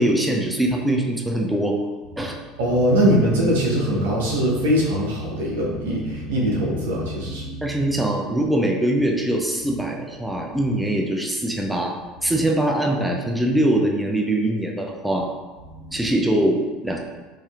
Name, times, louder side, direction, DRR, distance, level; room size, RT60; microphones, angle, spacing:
voice 1, 0.0-1.8 2.2-2.4 7.6-12.0 12.2-15.3 15.9-17.0, right 1 dB, 5° right, 1 dB, 0.5 m, -22 dB
voice 2, 2.6-7.8 15.7-15.9, equal, 80° right, -4 dB, 0.9 m, -22 dB
4.8 x 2.7 x 2.4 m, 1.3 s
hypercardioid pair, 80°, 0 cm